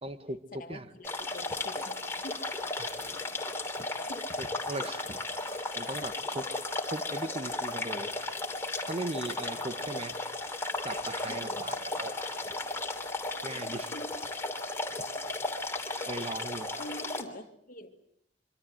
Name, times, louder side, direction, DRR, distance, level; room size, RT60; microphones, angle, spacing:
voice 1, 0.0-0.9 2.8-2.9 4.4-5.2 5.7-6.5 6.9-8.1 8.8-10.2 10.8-12.3 13.4-13.9 14.9-15.0 16.1-16.8, right 2 dB, 35° right, 10 dB, 1.2 m, -38 dB
voice 2, 0.5-3.0 4.0-4.4 9.4-9.9 11.3-11.8 13.5-14.3 16.0-16.1 16.8-17.9, left 1 dB, 50° left, 6 dB, 2.1 m, -47 dB
sound 1, 1.0-17.2, left 2 dB, 15° left, 3.0 m, -35 dB
25.5 x 25.0 x 7.9 m, 0.72 s
head